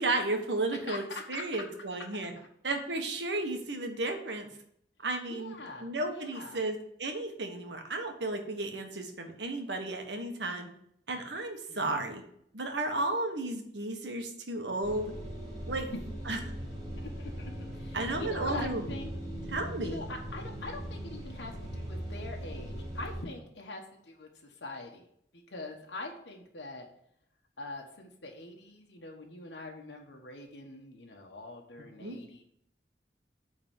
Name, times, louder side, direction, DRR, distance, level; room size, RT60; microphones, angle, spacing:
voice 1, 0.0-2.3 2.6-4.5 5.0-5.5 5.8-10.7 11.1-12.2 12.5-15.1 15.7-15.9 16.3-16.4 17.9-18.9 19.5-20.1 32.0-32.2, right 2 dB, 80° right, 4 dB, 1.5 m, -33 dB
voice 2, 0.9-1.4 2.4-2.5 5.3-6.6 11.7-12.2 15.9-16.0 17.0-19.1 19.8-25.1 25.3-26.9 27.6-32.4, left 2 dB, 85° left, 1 dB, 1.3 m, -43 dB
sound 1, 14.8-23.2, equal, 20° right, 2.5 m, -40 dB
8.8 x 4.0 x 7.1 m, 0.70 s
head